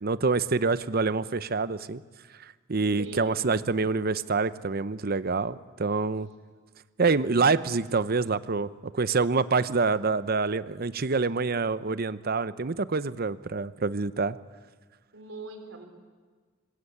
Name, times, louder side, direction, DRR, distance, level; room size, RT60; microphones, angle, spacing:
voice 1, 0.0-2.0 2.7-6.3 7.0-8.7 8.9-14.4, right 4 dB, 50° right, 15 dB, 0.8 m, -26 dB
voice 2, 3.0-3.5 15.1-15.9, right 2 dB, 80° right, 4 dB, 4.4 m, -41 dB
26.0 x 21.0 x 8.6 m, 1.5 s
head